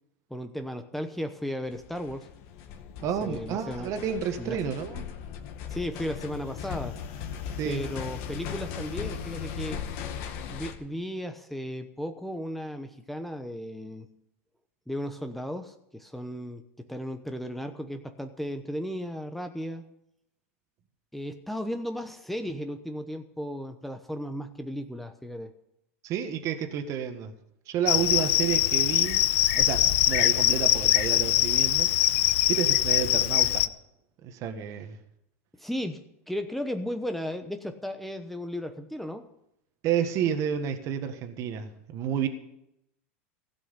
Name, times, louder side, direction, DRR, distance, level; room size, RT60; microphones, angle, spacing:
voice 1, 0.3-2.3 3.2-3.9 4.4-4.6 5.7-7.0 7.6-9.8 10.5-14.1 14.9-19.8 21.1-25.5 35.6-39.3, equal, ahead, 7 dB, 0.9 m, -35 dB
sound 1, 1.6-10.7, left 7 dB, 55° left, 1.9 m, -38 dB
voice 2, 3.0-5.1 7.6-7.8 26.0-27.3 27.7-29.2 29.5-31.9 32.2-33.6 34.2-35.0 39.8-42.3, right 8 dB, 45° right, 7 dB, 1.5 m, -30 dB
Cricket, 27.9-33.7, left 14 dB, 75° left, 0.7 m, -23 dB
16.0 x 6.1 x 9.9 m, 0.79 s
hypercardioid pair, 115°, 7 cm